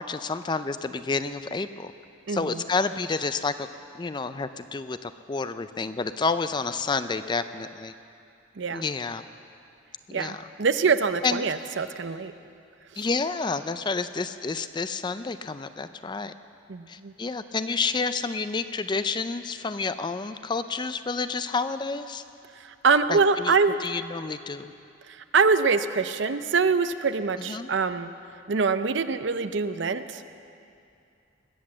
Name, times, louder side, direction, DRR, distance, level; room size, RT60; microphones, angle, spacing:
voice 1, 0.0-1.9 2.3-3.7 3.9-7.9 8.7-9.2 10.1-10.4 11.2-11.5 13.0-16.3 16.9-22.2 23.1-24.7 27.5-27.7, left 4 dB, 25° left, 11 dB, 0.4 m, -29 dB
voice 2, 2.3-2.6 8.6-8.8 10.1-12.3 13.0-13.1 16.7-17.1 22.6-23.8 25.1-28.1 28.5-30.2, right 4 dB, 65° right, 11 dB, 0.6 m, -24 dB
20.5 x 8.2 x 7.5 m, 2.5 s
head